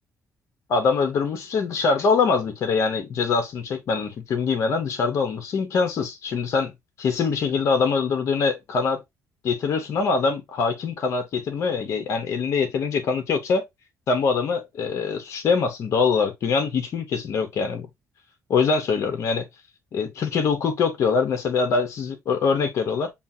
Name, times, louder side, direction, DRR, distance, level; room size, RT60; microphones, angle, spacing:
voice 1, 0.7-6.7 7.0-9.0 9.4-13.6 14.1-17.9 18.5-19.4 19.9-23.1, left 5 dB, 60° left, 0.8 m, -23 dB
7.0 x 2.4 x 2.7 m
cardioid pair, 115°, 6 cm